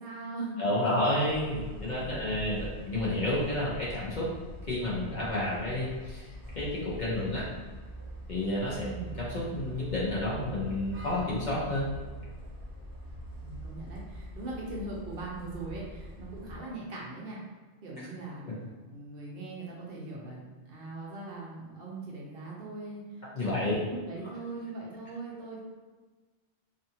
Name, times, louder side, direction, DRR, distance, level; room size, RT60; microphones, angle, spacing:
voice 1, 0.0-0.6 2.0-2.5 8.8-9.1 13.4-17.4 17.8-18.4 18.8-25.6, right 2 dB, 60° right, -4 dB, 0.8 m, -41 dB
voice 2, 0.6-4.3 4.7-6.3 6.5-7.5 8.3-11.9 23.3-23.7, left 1 dB, 50° left, -7 dB, 0.7 m, -30 dB
sound 1, 1.3-16.6, equal, 30° right, 0.4 m, -43 dB
2.6 x 2.4 x 2.7 m, 1.3 s
omnidirectional pair, 1.2 m